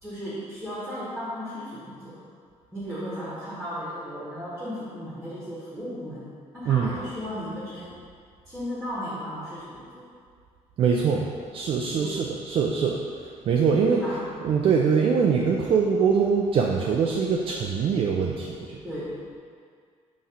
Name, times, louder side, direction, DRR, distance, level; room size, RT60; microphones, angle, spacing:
voice 1, 0.0-2.2 2.7-8.0 8.5-10.1 12.0-12.3 13.9-14.3 18.8-19.2, equal, ahead, -10 dB, 1.4 m, -35 dB
voice 2, 10.8-11.3 11.5-13.0 13.5-14.0 14.4-18.8, right 6 dB, 45° right, 0 dB, 0.4 m, -23 dB
5.7 x 3.2 x 5.6 m, 2.1 s
cardioid pair, 175°, 13 cm